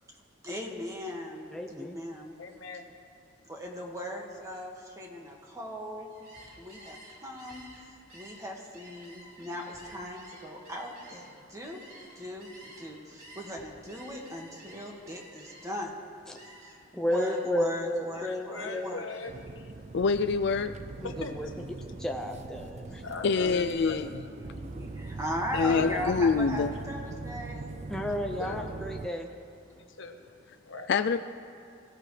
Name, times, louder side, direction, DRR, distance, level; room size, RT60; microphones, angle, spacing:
voice 1, 0.4-2.3 3.5-6.1 6.6-7.6 8.1-11.8 12.2-12.5 12.8-15.9 16.6-19.0 23.4-27.7, equal, 15° right, 0 dB, 1.9 m, -38 dB
voice 2, 1.5-2.0 16.3-16.4 16.9-18.9 21.0-21.5 22.0-23.0 27.9-29.3, left 1 dB, 5° left, 2 dB, 0.6 m, -32 dB
voice 3, 2.4-2.9 16.3-16.5 18.1-19.7 21.0-21.9 22.6-22.7 23.0-24.0 25.6-26.1 28.0-28.1 28.4-28.7 29.7-30.9, left 4 dB, 80° left, 4 dB, 1.4 m, -41 dB
Gull seagull, 6.1-12.9 13.2-15.9 16.3-16.8 17.1-17.6 17.9-19.4, right 1 dB, 55° right, 5.1 m, -52 dB
sound 1, 19.3-29.1, right 3 dB, 35° right, 0.4 m, -41 dB
voice 4, 19.9-20.8 23.2-24.1 25.5-26.7 30.9-31.2, left 5 dB, 60° left, 9 dB, 0.4 m, -25 dB
25.0 x 16.5 x 3.3 m, 2.4 s
head